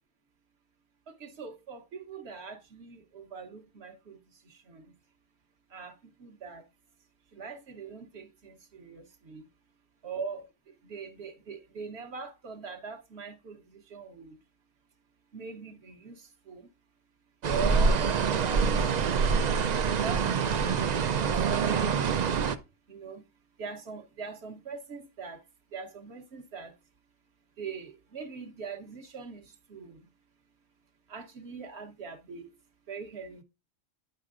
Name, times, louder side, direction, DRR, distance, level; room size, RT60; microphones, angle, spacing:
voice 1, 1.1-4.2 4.4-4.9 5.7-6.6 7.3-9.4 10.0-10.5 10.8-14.4 15.3-16.7 17.4-18.0 18.3-19.1 20.0-22.1 22.9-23.2 23.6-25.4 25.7-26.7 27.6-30.1 31.1-32.5 32.9-33.4, right 5 dB, 60° right, 1.0 m, -42 dB
sound 1, 17.4-22.5, right 5 dB, 75° right, 0.4 m, -26 dB
9.5 x 6.6 x 2.5 m
omnidirectional pair, 1.4 m